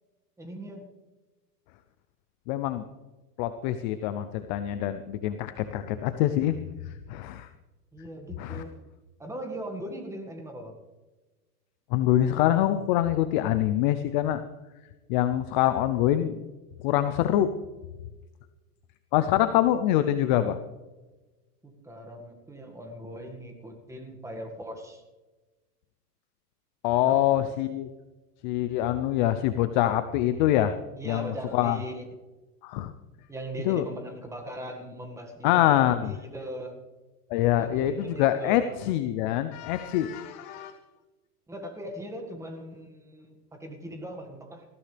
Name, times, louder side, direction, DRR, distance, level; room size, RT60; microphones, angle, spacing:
voice 1, 0.4-0.9 7.9-8.7 9.2-10.8 21.6-25.0 27.1-27.5 31.0-32.1 33.3-35.6 36.1-36.8 37.6-38.8 41.5-44.7, right 1 dB, 5° right, 3 dB, 1.8 m, -39 dB
voice 2, 2.5-2.8 3.4-6.6 6.9-7.5 8.4-8.6 11.9-14.4 15.1-16.4 16.8-17.5 19.1-20.6 26.8-27.9 28.4-30.7 31.1-31.8 32.6-32.9 33.7-33.9 35.4-36.1 37.3-40.8, left 12 dB, 30° left, 10 dB, 0.5 m, -25 dB
19.5 x 15.0 x 3.4 m, 1.2 s
hypercardioid pair, 140°, 48 cm